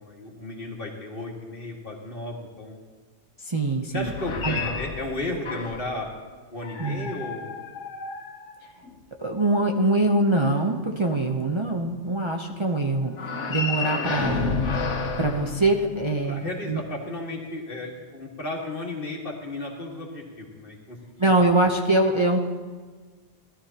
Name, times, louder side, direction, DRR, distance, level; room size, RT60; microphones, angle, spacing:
voice 1, 0.0-2.8 3.9-6.1 6.5-7.6 15.8-15.9 16.2-21.3, left 2 dB, 50° left, -1 dB, 2.0 m, -34 dB
voice 2, 3.4-4.1 4.4-4.6 6.8-7.1 9.2-14.6 15.2-16.8 21.2-22.4, right 2 dB, 30° right, 0 dB, 0.7 m, -23 dB
sound 1, 3.9-6.0 6.6-9.0 13.1-16.3, left 4 dB, 85° left, 1.2 m, -31 dB
18.0 x 12.5 x 2.9 m, 1.5 s
omnidirectional pair, 1.2 m